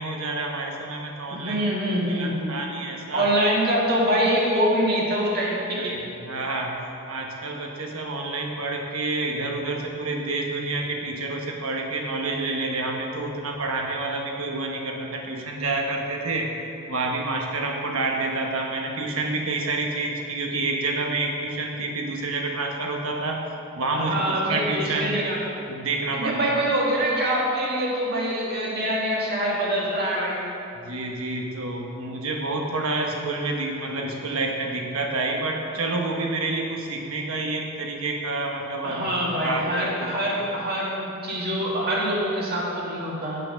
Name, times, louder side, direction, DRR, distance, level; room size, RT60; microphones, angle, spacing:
voice 1, 0.0-1.6 2.1-3.3 5.8-6.0 6.2-6.8 7.1-16.5 16.9-23.4 23.8-25.2 25.7-26.6 30.8-40.2, right 2 dB, 80° right, 1 dB, 1.2 m, -28 dB
voice 2, 1.3-2.6 3.1-6.0 23.9-25.4 26.1-30.4 38.8-43.4, equal, 45° right, -5 dB, 2.0 m, -25 dB
9.6 x 5.7 x 6.3 m, 2.8 s
head